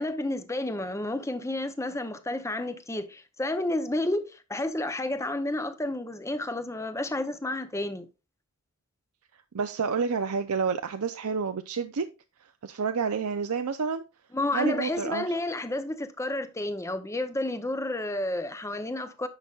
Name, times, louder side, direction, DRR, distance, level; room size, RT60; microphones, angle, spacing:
voice 1, 0.0-8.1 14.3-19.3, left 1 dB, 15° left, 0.7 m, -31 dB
voice 2, 9.5-12.1 12.4-14.0 14.5-15.3, right 5 dB, 80° right, 0.5 m, -29 dB
10.5 x 6.9 x 2.4 m
head